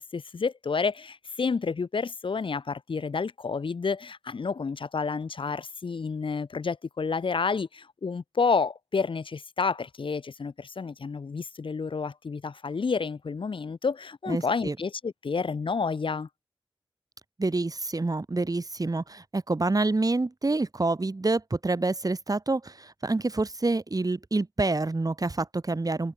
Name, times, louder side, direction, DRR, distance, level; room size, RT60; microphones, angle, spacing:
voice 1, 0.0-16.3, left 5 dB, 75° left, 0.8 m, -30 dB
voice 2, 14.3-14.8 17.4-26.1, right 2 dB, 45° right, 2.6 m, -27 dB
wide cardioid pair, 65°, 9 cm